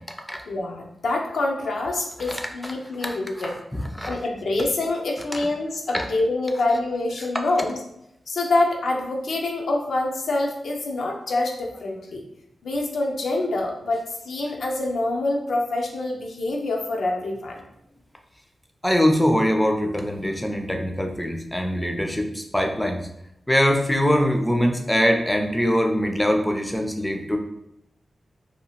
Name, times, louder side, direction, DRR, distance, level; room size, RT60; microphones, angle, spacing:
voice 1, 0.5-3.5 4.1-7.8 8.3-12.2 12.6-17.6, left 2 dB, 85° left, 0 dB, 0.5 m, -26 dB
voice 2, 18.8-23.0 23.5-27.4, equal, 10° left, 3 dB, 0.4 m, -22 dB
2.8 x 2.3 x 2.8 m, 0.80 s
wide cardioid pair, 115°, 0 cm